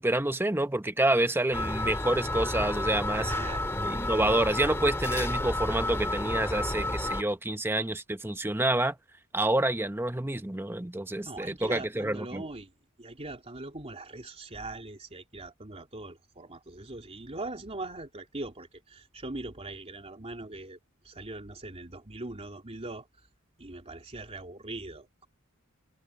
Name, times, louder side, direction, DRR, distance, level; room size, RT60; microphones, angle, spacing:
voice 1, 0.0-3.3 3.8-9.0 9.3-12.5, right 1 dB, 10° right, 0.9 m, -28 dB
sound 1, 1.5-7.2, left 1 dB, 10° left, 2.0 m, -31 dB
voice 2, 3.1-3.7 11.2-12.7 13.0-20.8 21.0-23.1 23.6-25.3, right 2 dB, 30° right, 3.2 m, -41 dB
head